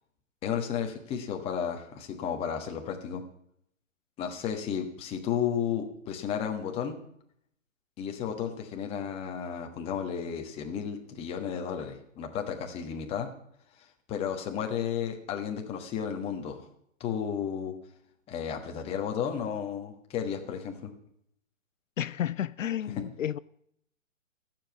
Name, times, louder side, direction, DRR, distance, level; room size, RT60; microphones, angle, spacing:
voice 1, 0.4-3.2 4.2-7.0 8.0-13.3 13.8-16.7 17.0-17.7 18.3-20.9, left 8 dB, 15° left, 1.3 m, -33 dB
voice 2, 22.0-23.4, left 10 dB, 75° left, 0.5 m, -31 dB
13.0 x 7.4 x 8.0 m
hypercardioid pair, 140°, 38 cm